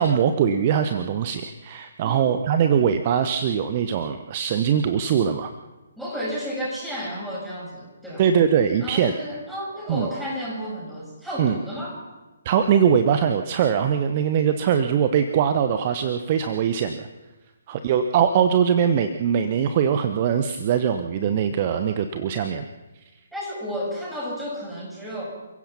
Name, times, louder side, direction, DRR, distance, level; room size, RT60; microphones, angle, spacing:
voice 1, 0.0-5.5 8.2-9.1 9.9-10.1 11.4-11.6 12.4-17.1 17.7-22.6, right 8 dB, 30° right, 9 dB, 1.0 m, -21 dB
voice 2, 6.0-8.2 8.8-12.0 23.3-25.2, equal, 5° right, -6 dB, 7.9 m, -32 dB
29.0 x 16.0 x 5.8 m, 1.1 s
figure-of-eight pair, 135°, 0 cm